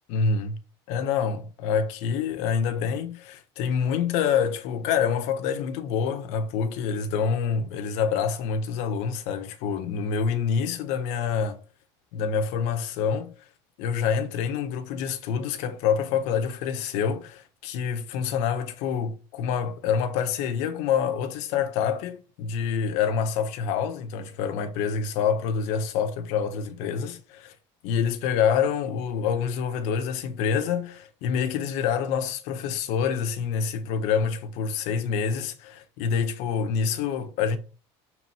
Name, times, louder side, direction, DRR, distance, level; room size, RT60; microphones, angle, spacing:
voice 1, 0.1-0.6 0.9-11.6 12.1-13.3 13.8-27.5 27.8-37.6, left 6 dB, 70° left, 1.6 m, -27 dB
6.8 x 4.8 x 5.8 m
cardioid pair, 145°, 12 cm